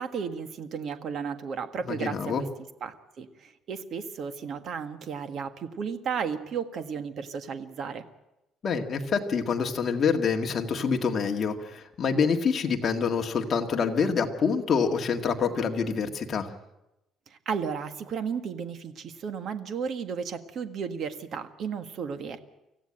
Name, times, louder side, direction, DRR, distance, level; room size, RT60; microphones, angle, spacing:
voice 1, 0.0-2.4 2.8-8.0 17.3-22.4, right 6 dB, 45° right, 9 dB, 1.5 m, -34 dB
voice 2, 1.8-2.4 8.6-16.5, left 6 dB, 30° left, 3 dB, 1.9 m, -26 dB
25.0 x 15.5 x 8.8 m, 0.94 s
cardioid pair, 165°, 0 cm